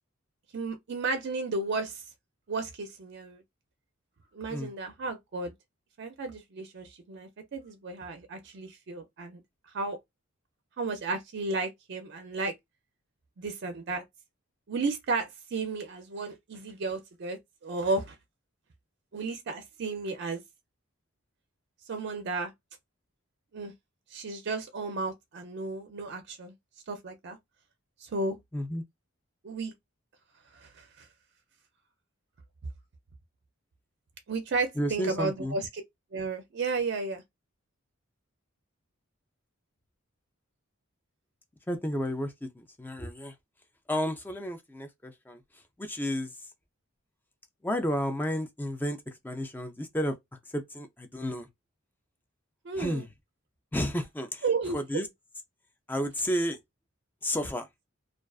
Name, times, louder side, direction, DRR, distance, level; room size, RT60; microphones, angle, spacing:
voice 1, 0.5-2.0 2.5-3.4 4.3-5.5 6.0-9.4 9.7-10.0 10.8-12.5 13.4-14.0 14.7-18.2 19.1-20.4 21.9-22.5 23.5-23.7 24.1-26.5 26.9-27.4 28.0-28.4 29.4-29.7 30.5-31.1 34.3-35.7 36.1-37.2 52.6-53.0 54.4-55.0, right 3 dB, 55° right, 0.4 m, -33 dB
voice 2, 28.5-28.8 34.8-35.6 41.7-43.3 43.9-45.4 45.8-46.3 47.6-49.0 49.2-50.2 50.5-51.5 52.8-53.1 53.7-54.4 54.7-55.1 55.9-56.6 57.2-57.7, equal, 10° left, 0.3 m, -31 dB
2.4 x 2.3 x 2.3 m
head